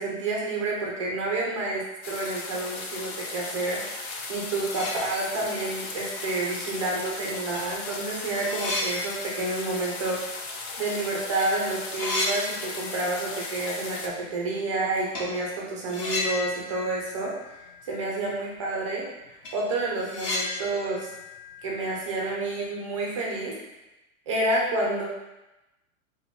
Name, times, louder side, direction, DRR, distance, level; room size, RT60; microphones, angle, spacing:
voice 1, 0.0-4.0 4.3-10.2 10.8-17.3 17.8-19.1 19.5-21.1 21.6-23.6 24.3-25.0, right 2 dB, 25° right, -2 dB, 0.3 m, -29 dB
sound 1, 2.0-14.1, left 3 dB, 70° left, 0.8 m, -37 dB
sound 2, 4.2-4.3 4.6-5.6 6.0-6.1 7.0-7.1 7.5-11.0 11.2-11.5 11.7-13.3 13.6-13.7 15.1-15.4 15.9-18.0 18.3-18.4 18.8-18.9 19.2-22.5, left 2 dB, 35° left, 0.8 m, -34 dB
4.7 x 2.1 x 3.5 m, 1.0 s
supercardioid pair, 160°, 43 cm